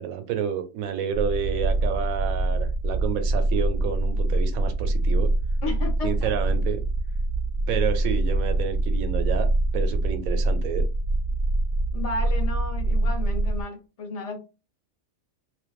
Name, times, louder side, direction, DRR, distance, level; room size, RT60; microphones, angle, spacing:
voice 1, 0.0-5.3 6.0-6.8 7.7-9.5 9.7-10.9, right 8 dB, 85° right, 1.0 m, -29 dB
sound 1, 1.1-13.6, right 2 dB, 70° left, 1.0 m, -24 dB
voice 2, 5.6-6.3 11.9-14.4, left 3 dB, 40° left, 0.6 m, -33 dB
2.5 x 2.2 x 2.2 m
omnidirectional pair, 1.4 m